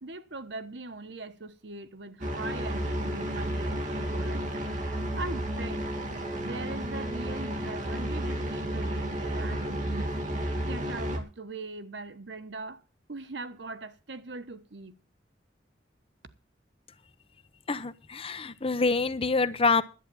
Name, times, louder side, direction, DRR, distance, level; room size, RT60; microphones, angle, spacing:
voice 1, 0.0-4.4 5.1-5.8 6.4-10.1 10.6-12.8 13.1-14.9, right 3 dB, 85° right, 1.3 m, -40 dB
sound 1, 2.2-11.2, right 1 dB, 45° right, 2.4 m, -32 dB
voice 2, 17.7-19.8, left 4 dB, 35° left, 0.8 m, -26 dB
11.0 x 8.9 x 7.0 m
head